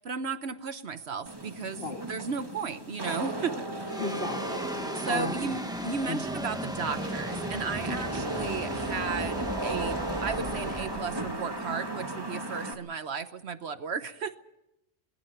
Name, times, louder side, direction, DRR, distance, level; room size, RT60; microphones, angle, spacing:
voice 1, 0.0-1.8 2.1-4.0 4.9-10.0 10.2-14.4, right 5 dB, 70° right, 10 dB, 1.2 m, -34 dB
Wind / Rain, 1.3-12.7, right 1 dB, 20° right, 2.5 m, -36 dB
sound 1, 3.9-12.4, equal, 5° right, 1.1 m, -37 dB
voice 2, 4.0-5.5 6.1-6.2, left 3 dB, 55° left, 3 dB, 2.0 m, -35 dB
25.0 x 21.5 x 5.9 m, 0.87 s
omnidirectional pair, 1.1 m